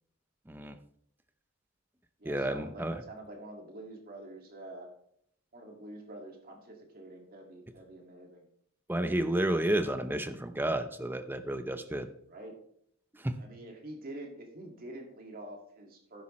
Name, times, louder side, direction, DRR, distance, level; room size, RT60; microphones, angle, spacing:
voice 1, 0.5-0.8 2.2-3.0 8.9-12.1 13.1-13.3, right 1 dB, 10° right, 9 dB, 0.7 m, -31 dB
voice 2, 2.2-4.9 5.5-8.4 12.3-12.5 13.4-16.2, right 1 dB, 45° right, 1 dB, 2.1 m, -46 dB
11.5 x 9.8 x 3.2 m, 0.69 s
head